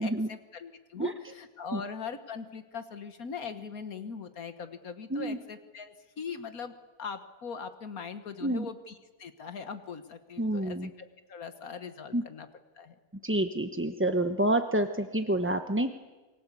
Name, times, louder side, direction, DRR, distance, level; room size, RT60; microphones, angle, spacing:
voice 1, 0.0-12.5 12.7-13.0, left 6 dB, 70° left, 9 dB, 1.8 m, -41 dB
voice 2, 10.4-10.9 12.1-12.2 13.2-15.9, right 1 dB, 10° right, 7 dB, 0.8 m, -28 dB
29.0 x 23.0 x 8.4 m, 1.3 s
omnidirectional pair, 1.6 m